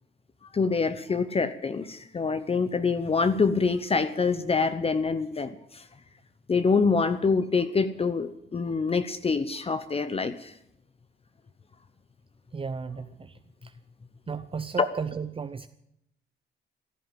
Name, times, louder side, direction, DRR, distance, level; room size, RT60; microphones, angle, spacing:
voice 1, 0.5-5.8 6.5-10.5, left 4 dB, 30° left, 11 dB, 0.9 m, -26 dB
voice 2, 12.5-13.7 14.3-15.7, right 5 dB, 25° right, 10 dB, 0.7 m, -35 dB
15.5 x 11.5 x 7.5 m, 0.79 s
cardioid pair, 90°, 20 cm